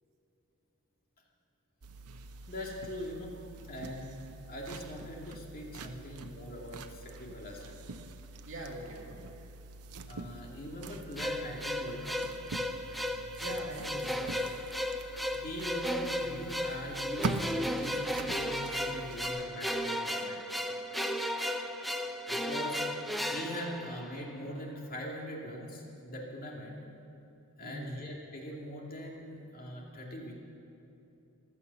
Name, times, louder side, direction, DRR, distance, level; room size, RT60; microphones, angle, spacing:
sound 1, 1.8-19.3, right 3 dB, 90° right, 0.8 m, -44 dB
voice 1, 2.5-3.3 3.7-4.2 4.5-7.8 10.1-12.2 15.3-20.4 21.5-22.8 23.3-26.8 27.6-30.4, equal, 40° left, -1 dB, 2.5 m, -42 dB
voice 2, 8.5-9.2 13.4-14.4 27.6-28.0, right 1 dB, 60° right, 0 dB, 2.3 m, -42 dB
sound 2, 11.2-24.4, equal, ahead, 0.6 m, -35 dB
15.0 x 12.5 x 7.1 m, 2.9 s
head